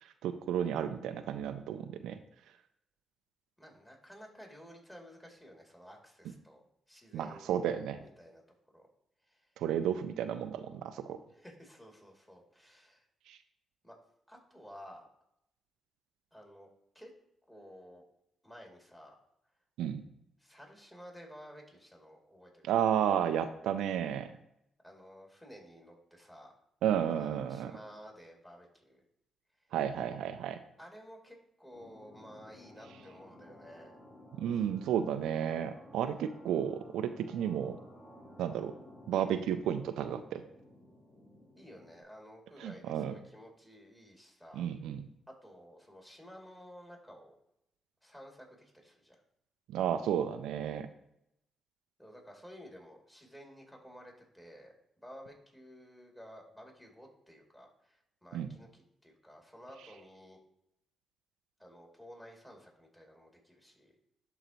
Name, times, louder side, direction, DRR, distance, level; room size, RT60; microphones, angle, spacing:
voice 1, 0.0-2.2 7.1-8.0 9.6-11.2 13.3-13.4 19.8-20.0 22.6-24.3 26.8-27.8 29.7-30.6 34.3-37.8 38.4-38.7 39.1-40.4 42.6-43.1 44.5-45.1 49.7-50.9 58.3-58.5, right 9 dB, 80° right, 9 dB, 0.4 m, -32 dB
voice 2, 3.6-7.5 8.0-8.4 8.7-8.9 9.2-9.5 11.3-13.1 13.8-14.0 14.3-15.1 16.3-16.7 16.9-17.1 17.5-18.0 18.4-19.2 20.4-22.7 24.8-26.5 27.2-29.0 29.6-29.7 30.8-33.9 41.5-44.6 45.3-47.3 48.0-49.2 52.0-54.7 55.0-60.4 61.6-64.0, equal, 10° left, 0 dB, 2.7 m, -53 dB
sound 1, 31.7-42.0, left 1 dB, 30° left, 2.9 m, -55 dB
11.5 x 3.9 x 3.0 m, 0.79 s
supercardioid pair, 50°, 0 cm